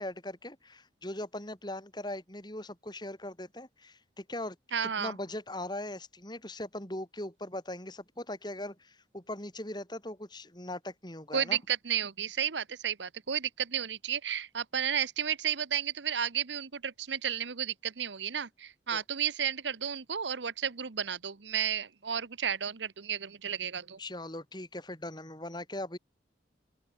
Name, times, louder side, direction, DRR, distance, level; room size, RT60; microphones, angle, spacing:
voice 1, 0.0-4.6 4.8-11.6 18.9-19.0 24.0-26.0, left 1 dB, 25° left, 4.6 m, -40 dB
voice 2, 4.7-5.1 11.3-24.0, right 8 dB, 80° right, 1.0 m, -32 dB
open air
head